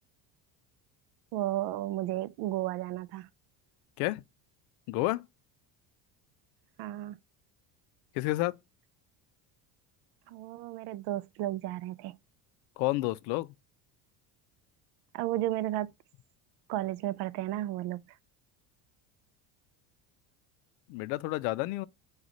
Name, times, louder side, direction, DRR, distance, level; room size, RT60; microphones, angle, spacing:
voice 1, 1.3-3.3 6.8-7.2 10.3-12.2 15.1-15.9 16.7-18.0, right 14 dB, 65° right, 0.5 m, -33 dB
voice 2, 4.9-5.3 8.1-8.6 12.8-13.5 20.9-21.9, left 19 dB, 85° left, 0.5 m, -30 dB
6.4 x 2.4 x 2.9 m
cardioid pair, 130°, 42 cm